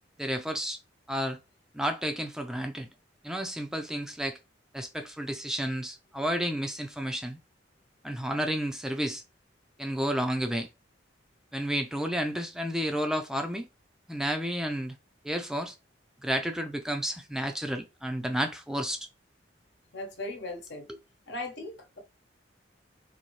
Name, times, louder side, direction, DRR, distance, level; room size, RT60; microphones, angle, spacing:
voice 1, 0.2-0.8 1.1-1.4 1.7-2.9 3.2-4.4 4.7-7.4 8.0-9.2 9.8-10.7 11.5-13.7 14.1-15.0 15.2-15.7 16.2-19.1, equal, 5° right, 0.4 m, -31 dB
voice 2, 19.9-20.9 21.3-22.0, left 2 dB, 65° left, 1.1 m, -38 dB
4.1 x 2.7 x 3.1 m
head